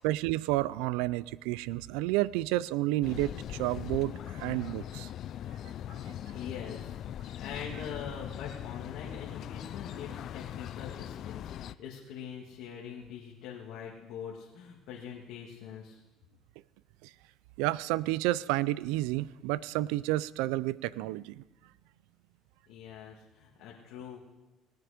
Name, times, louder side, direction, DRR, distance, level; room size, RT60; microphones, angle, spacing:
voice 1, 0.0-5.1 6.1-6.2 17.0-17.1 17.6-21.4, right 17 dB, 85° right, 21 dB, 0.4 m, -30 dB
sound 1, 3.0-11.7, left 11 dB, 55° left, 0.3 m, -40 dB
voice 2, 6.3-16.0 22.7-24.2, left 7 dB, 75° left, -3 dB, 1.9 m, -43 dB
18.5 x 9.2 x 5.1 m, 1.1 s
supercardioid pair, 100°, 0 cm